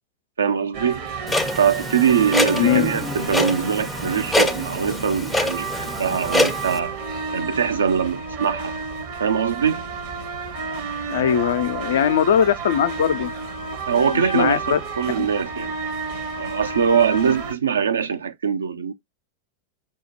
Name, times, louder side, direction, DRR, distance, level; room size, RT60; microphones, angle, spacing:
voice 1, 0.4-1.1 1.6-6.9 7.3-8.7 9.2-9.8 13.9-14.6 15.0-15.7 16.4-18.9, right 7 dB, 70° right, 0.6 m, -22 dB
sound 1, 0.7-17.5, right 4 dB, 50° right, 0.9 m, -31 dB
Clock, 1.3-6.8, left 1 dB, 5° left, 0.5 m, -25 dB
voice 2, 2.5-2.9 11.1-13.3 14.1-14.8 15.2-15.3, left 9 dB, 60° left, 0.4 m, -20 dB
5.8 x 2.1 x 2.8 m
figure-of-eight pair, 90°, 0 cm